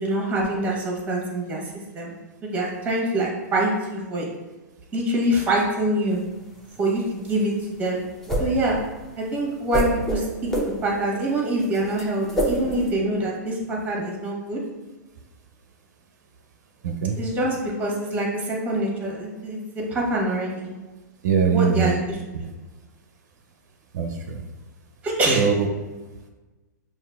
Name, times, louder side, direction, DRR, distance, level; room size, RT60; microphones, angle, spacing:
voice 1, 0.0-1.6 1.9-2.1 2.4-4.2 4.9-6.2 6.8-8.0 8.4-8.8 9.2-10.5 10.8-14.6 17.2-20.7 21.4-22.2 25.0-25.5, right 1 dB, 15° right, -2 dB, 1.1 m, -25 dB
sound 1, 6.1-12.9, right 1 dB, 5° left, 0.6 m, -27 dB
voice 2, 16.8-17.1 21.2-21.9 23.9-24.4 25.4-25.7, right 6 dB, 70° right, 4 dB, 0.4 m, -21 dB
5.6 x 2.5 x 2.3 m, 1.2 s
hypercardioid pair, 130°, 10 cm